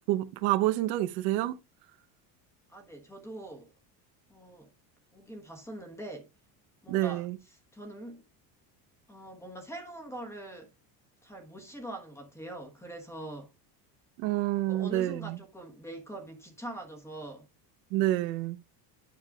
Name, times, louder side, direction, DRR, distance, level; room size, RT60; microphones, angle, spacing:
voice 1, 0.1-1.6 6.9-7.4 14.2-15.4 17.9-18.6, right 15 dB, 85° right, 0.9 m, -28 dB
voice 2, 2.7-3.7 4.3-4.7 5.1-6.3 6.8-7.3 7.7-8.2 9.1-10.7 11.2-13.5 14.6-17.5, right 1 dB, 5° left, 1.2 m, -43 dB
9.6 x 6.6 x 2.3 m
cardioid pair, 170°, 41 cm